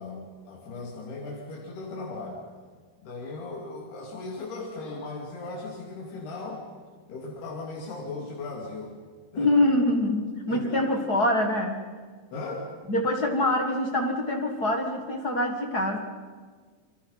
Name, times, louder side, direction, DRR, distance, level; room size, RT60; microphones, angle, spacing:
voice 1, 0.0-2.4 3.0-6.6 7.1-9.0 9.3-9.7 10.5-11.0 12.3-12.7, left 3 dB, 90° left, -2 dB, 4.8 m, -37 dB
voice 2, 9.4-11.9 12.9-16.0, left 1 dB, 40° left, 3 dB, 1.5 m, -25 dB
30.0 x 23.5 x 5.7 m, 1.5 s
omnidirectional pair, 4.5 m